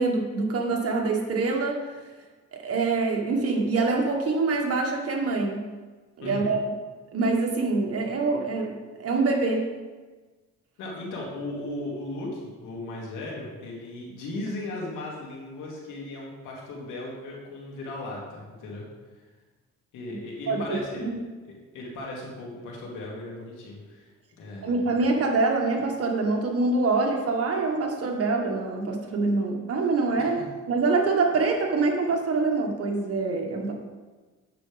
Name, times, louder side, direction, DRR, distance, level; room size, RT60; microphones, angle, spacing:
voice 1, 0.0-1.8 2.5-5.7 6.2-6.6 7.1-9.7 20.5-21.2 24.6-30.4 30.7-33.7, right 3 dB, 50° right, 1 dB, 1.7 m, -25 dB
voice 2, 6.2-6.5 10.8-18.9 19.9-21.1 21.7-24.1 24.4-24.9 30.2-30.3, left 2 dB, 90° left, -3 dB, 2.6 m, -36 dB
9.2 x 7.1 x 3.5 m, 1.3 s
cardioid pair, 90°, 30 cm